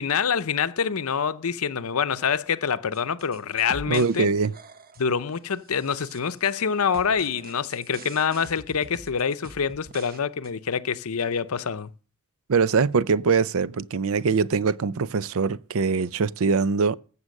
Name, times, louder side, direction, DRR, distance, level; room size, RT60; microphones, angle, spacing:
voice 1, 0.0-4.3 5.0-11.9, left 6 dB, 70° left, 0.7 m, -26 dB
sound 1, 2.9-4.2 4.4-5.1 5.7-6.6 6.9-10.2 10.4-10.5, right 2 dB, 40° right, 1.0 m, -44 dB
voice 2, 3.9-4.5 12.5-17.0, right 5 dB, 65° right, 0.5 m, -23 dB
14.5 x 7.4 x 6.5 m
head